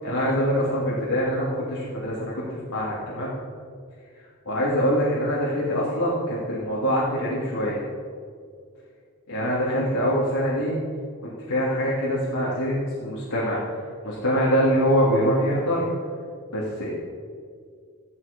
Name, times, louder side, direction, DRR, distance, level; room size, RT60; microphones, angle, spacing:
voice 1, 0.0-3.3 4.1-7.9 9.3-10.8 11.2-15.9 16.5-16.9, equal, 70° left, -7 dB, 3.2 m, -24 dB
15.0 x 13.5 x 5.5 m, 2.1 s
head